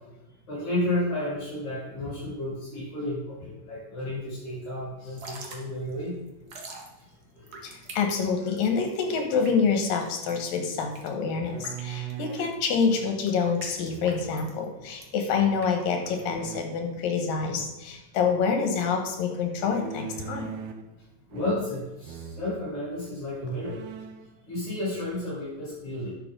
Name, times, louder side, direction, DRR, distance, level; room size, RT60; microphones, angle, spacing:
voice 1, 0.5-6.2 7.3-7.6 21.3-23.8 24.5-26.1, left 1 dB, 55° left, -8 dB, 5.1 m, -32 dB
Drip / Trickle dribble, 5.0-16.6, right 3 dB, 65° right, 0.9 m, -47 dB
voice 2, 7.6-20.5, left 5 dB, 85° left, 4 dB, 3.1 m, -27 dB
sound 1, 11.3-12.6 13.8-14.5 16.0-16.6 19.6-20.9 21.3-21.8 22.0-22.5 23.1-23.2 23.5-24.3, right 8 dB, 90° right, 2.5 m, -40 dB
10.5 x 6.9 x 3.8 m, 1.0 s
omnidirectional pair, 3.9 m